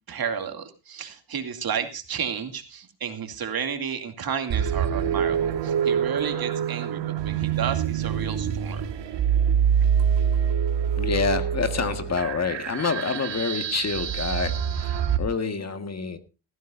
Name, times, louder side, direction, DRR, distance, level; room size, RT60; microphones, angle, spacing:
voice 1, 0.1-8.8, right 7 dB, 55° right, 2.5 m, -32 dB
sound 1, 4.5-15.2, right 8 dB, 75° right, 1.8 m, -25 dB
voice 2, 11.0-16.2, left 5 dB, 35° left, 1.6 m, -27 dB
19.0 x 14.5 x 2.6 m
cardioid pair, 120°, 43 cm